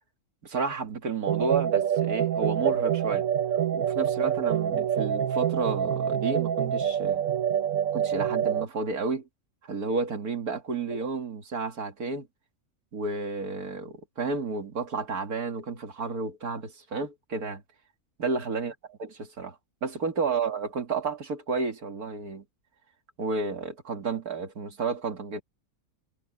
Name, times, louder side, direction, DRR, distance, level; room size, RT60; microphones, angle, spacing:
voice 1, 0.4-3.3 3.7-7.2 7.9-9.3 9.6-12.3 12.9-17.6 18.2-22.4 23.2-25.4, right 4 dB, 85° right, 2.6 m, -31 dB
sound 1, 1.3-8.6, right 9 dB, 70° right, 1.2 m, -26 dB
omnidirectional pair, 1.5 m